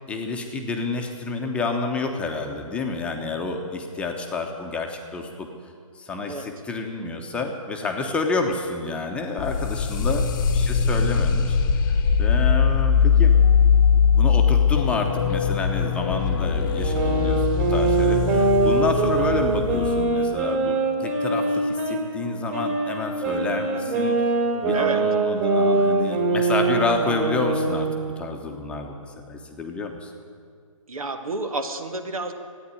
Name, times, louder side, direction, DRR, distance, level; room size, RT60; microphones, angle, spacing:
voice 1, 0.1-5.5 5.9-10.3 10.5-11.6 11.9-13.3 14.1-24.2 24.6-27.9 28.2-30.1, left 3 dB, 5° left, 2 dB, 0.9 m, -29 dB
sound 1, 9.4-20.0, left 6 dB, 35° left, 0.9 m, -21 dB
voice 2, 9.9-10.3 24.7-25.0 30.9-32.3, right 2 dB, 80° right, 7 dB, 1.7 m, -30 dB
sound 2, 16.8-22.0 22.5-28.1, right 3 dB, 30° right, 2.9 m, -23 dB
14.0 x 9.6 x 9.8 m, 2.2 s
hypercardioid pair, 155°, 18 cm